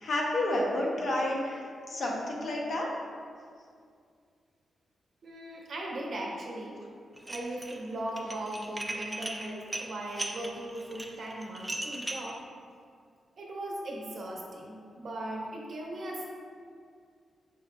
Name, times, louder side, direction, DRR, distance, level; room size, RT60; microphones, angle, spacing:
voice 1, 0.0-2.9, left 1 dB, 55° left, -2 dB, 0.6 m, -30 dB
voice 2, 5.2-6.8 7.3-12.4 13.4-16.2, right 1 dB, 60° right, -2 dB, 0.6 m, -38 dB
Dishes pots and pans, 7.2-7.8 8.1-12.3, right 1 dB, 15° right, 0.3 m, -37 dB
6.2 x 2.4 x 2.2 m, 2.2 s
wide cardioid pair, 120°, 0 cm